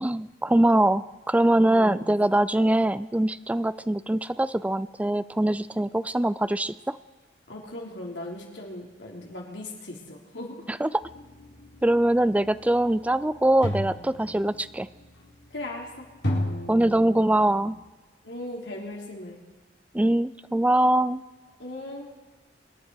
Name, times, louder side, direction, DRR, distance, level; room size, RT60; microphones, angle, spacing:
voice 1, 0.0-7.0 10.8-10.9 11.8-14.9 16.7-17.8 19.9-21.2, right 1 dB, 10° right, 16 dB, 0.4 m, -23 dB
voice 2, 1.7-2.1 7.5-10.7 15.5-16.1 18.2-19.4 21.6-22.1, left 1 dB, 85° left, -1 dB, 3.5 m, -38 dB
sound 1, 11.0-17.8, left 1 dB, 70° left, 4.0 m, -35 dB
25.5 x 10.0 x 4.7 m, 1.3 s
head